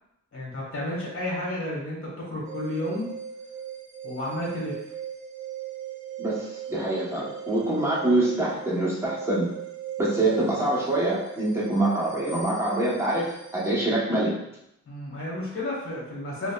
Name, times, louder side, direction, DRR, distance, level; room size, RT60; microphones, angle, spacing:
voice 1, 0.3-3.1 4.0-4.8 14.9-16.5, left 1 dB, 50° left, -4 dB, 1.4 m, -32 dB
sound 1, 2.4-13.7, right 9 dB, 70° right, 0.7 m, -39 dB
voice 2, 6.2-9.5 10.0-14.4, right 2 dB, 10° right, -7 dB, 1.0 m, -25 dB
4.9 x 2.2 x 2.3 m, 0.82 s
wide cardioid pair, 130°, 30 cm